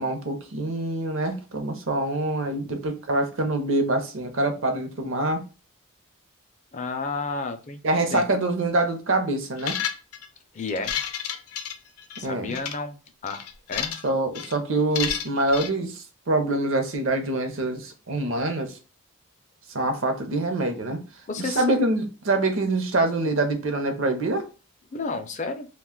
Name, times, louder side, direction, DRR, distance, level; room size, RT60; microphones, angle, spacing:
voice 1, 0.0-5.4 7.8-9.8 12.2-12.5 14.0-18.8 19.7-21.0 21.4-24.5, right 2 dB, 60° right, 0.6 m, -25 dB
voice 2, 6.7-8.3 10.5-11.0 12.2-13.9 21.3-21.6 24.9-25.7, left 3 dB, 35° left, 0.4 m, -32 dB
sound 1, 9.6-10.3 10.7-12.2 12.5-12.8 13.3-14.1 14.3-14.5 15.0-15.7, left 9 dB, 85° left, 0.5 m, -31 dB
2.5 x 2.2 x 3.6 m
head